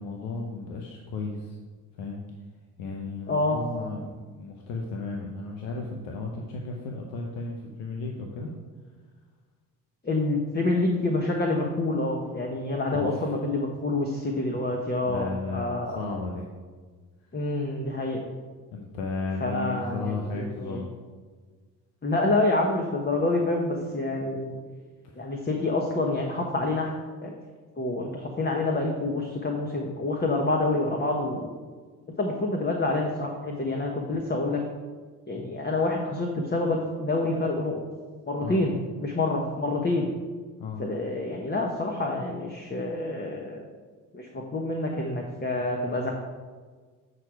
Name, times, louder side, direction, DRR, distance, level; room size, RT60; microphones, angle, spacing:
voice 1, 0.0-1.6 2.0-2.2 2.8-8.5 12.9-13.3 15.0-16.5 18.7-20.9 25.0-25.3 38.4-38.6 40.6-40.8, left 3 dB, 85° left, 0 dB, 0.9 m, -34 dB
voice 2, 3.3-3.6 10.0-16.1 17.3-18.2 19.4-20.8 22.0-24.6 25.2-26.9 27.2-27.3 27.8-31.6 32.2-34.6 35.3-37.8 38.3-40.1 40.8-43.6 44.1-46.1, left 2 dB, 25° left, 1 dB, 1.2 m, -27 dB
7.7 x 4.8 x 4.7 m, 1.5 s
hypercardioid pair, 55°, 41 cm